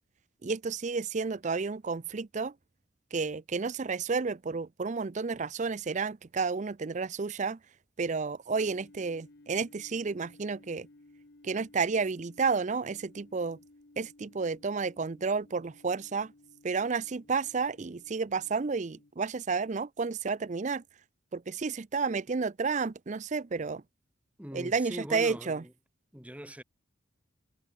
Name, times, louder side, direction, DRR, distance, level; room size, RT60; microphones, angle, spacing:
voice 1, 0.4-2.5 3.1-7.6 8.0-10.9 11.4-13.6 14.0-16.3 16.6-20.8 21.3-23.8 24.5-25.6, right 4 dB, 35° right, 0.5 m, -31 dB
sound 1, 8.5-19.1, left 2 dB, 50° left, 1.1 m, -58 dB
voice 2, 24.4-25.7 26.1-26.6, equal, 5° right, 2.9 m, -42 dB
head